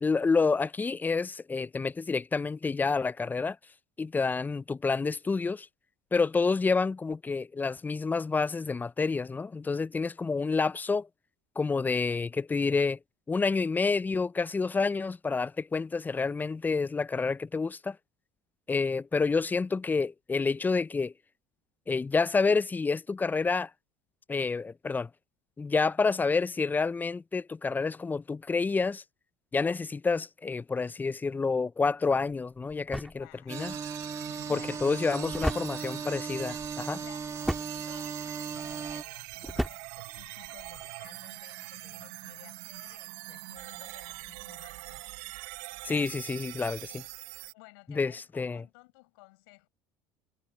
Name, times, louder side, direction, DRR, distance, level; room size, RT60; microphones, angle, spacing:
voice 1, 0.0-3.6 4.0-5.7 6.1-11.1 11.6-13.0 13.3-18.0 18.7-21.1 21.9-23.7 24.3-25.1 25.6-29.0 29.5-33.7 34.5-37.0 45.8-47.0 47.9-48.6, left 4 dB, 15° left, 0.4 m, -28 dB
sound 1, 32.0-40.9, equal, ahead, 2.7 m, -38 dB
voice 2, 33.1-33.7 34.3-35.5 37.0-45.1 47.5-49.7, left 26 dB, 80° left, 4.9 m, -55 dB
sound 2, 33.5-39.0, right 5 dB, 25° right, 2.1 m, -37 dB
sound 3, 33.5-47.5, right 23 dB, 75° right, 0.8 m, -43 dB
supercardioid pair, 90°, 12 cm